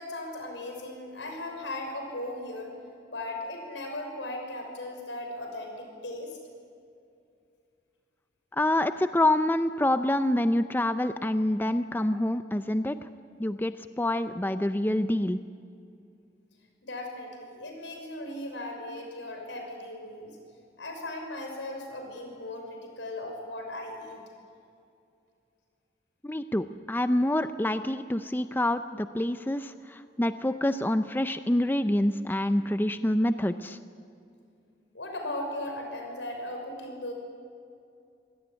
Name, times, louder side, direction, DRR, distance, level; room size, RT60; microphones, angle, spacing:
voice 1, 0.0-2.7 3.1-6.4 16.8-20.4 20.8-24.2 34.9-37.1, left 1 dB, 85° left, 3 dB, 6.1 m, -37 dB
voice 2, 8.5-13.0 13.4-15.4 26.2-33.8, left 1 dB, 10° left, 10 dB, 0.5 m, -27 dB
26.5 x 17.5 x 9.8 m, 2.5 s
head